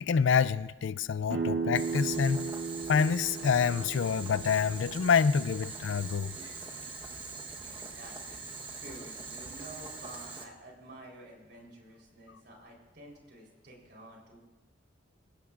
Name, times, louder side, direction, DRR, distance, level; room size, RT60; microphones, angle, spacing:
voice 1, 0.0-2.5 2.9-6.3, left 6 dB, 75° left, 0.4 m, -27 dB
sound 1, 1.3-6.9, right 4 dB, 85° right, 1.9 m, -37 dB
Boiling, 1.7-10.4, right 4 dB, 25° right, 1.1 m, -43 dB
voice 2, 7.6-8.5 8.8-14.4, right 1 dB, 55° right, 3.9 m, -50 dB
21.0 x 16.5 x 2.5 m
head